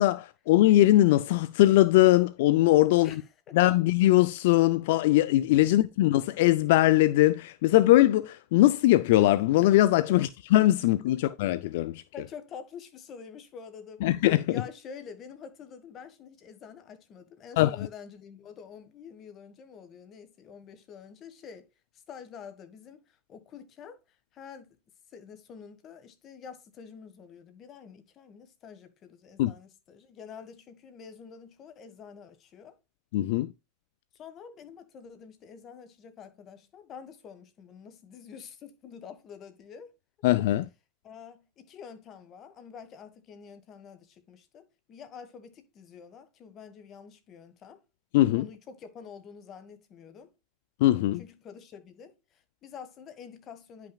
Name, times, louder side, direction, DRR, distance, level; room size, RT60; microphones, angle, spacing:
voice 1, 0.0-3.1 3.5-12.0 14.0-14.6 17.6-17.9 29.4-29.5 33.1-33.5 40.2-40.7 48.1-48.5 50.8-51.2, left 15 dB, 70° left, 0.4 m, -21 dB
voice 2, 3.0-3.6 10.0-10.3 11.1-11.2 12.1-14.1 14.5-21.7 21.9-24.8 25.1-32.8 34.1-39.9 41.0-47.8 48.3-50.3 51.2-53.9, left 6 dB, 40° left, 1.5 m, -47 dB
10.0 x 5.8 x 2.3 m
supercardioid pair, 120°, 0 cm